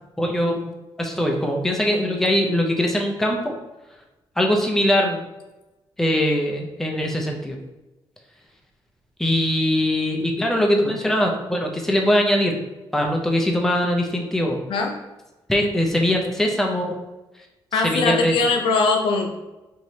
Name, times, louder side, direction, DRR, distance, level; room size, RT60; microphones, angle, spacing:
voice 1, 0.2-0.7 1.0-3.5 4.4-5.2 6.0-7.6 9.2-12.6 12.9-14.6 15.5-17.0 17.8-18.3, left 1 dB, 5° left, 1 dB, 0.5 m, -21 dB
voice 2, 17.7-19.3, left 4 dB, 80° left, 3 dB, 0.6 m, -21 dB
4.5 x 3.0 x 2.8 m, 1.1 s
cardioid pair, 145°, 9 cm